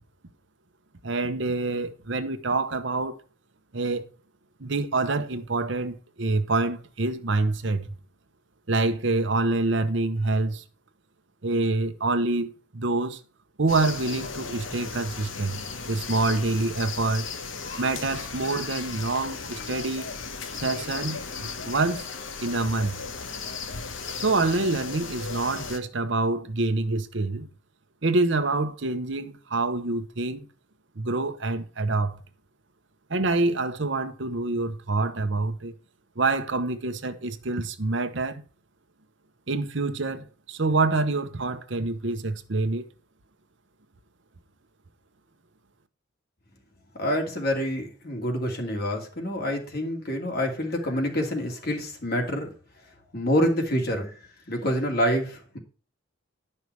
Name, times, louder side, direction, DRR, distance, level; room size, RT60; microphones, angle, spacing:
voice 1, 1.0-3.2 3.7-4.0 4.6-8.0 8.7-10.6 11.4-13.2 13.6-15.6 15.9-17.3 17.8-20.1 20.6-22.1 22.4-23.0 24.2-27.5 28.0-30.5 31.0-32.2 33.1-35.7 36.2-38.4 39.5-42.8, right 3 dB, 65° right, 1.0 m, -26 dB
sound 1, 13.7-25.8, left 5 dB, 75° left, 1.3 m, -36 dB
voice 2, 47.0-52.5 53.1-55.6, equal, 50° left, 2.5 m, -27 dB
11.0 x 5.6 x 4.7 m
head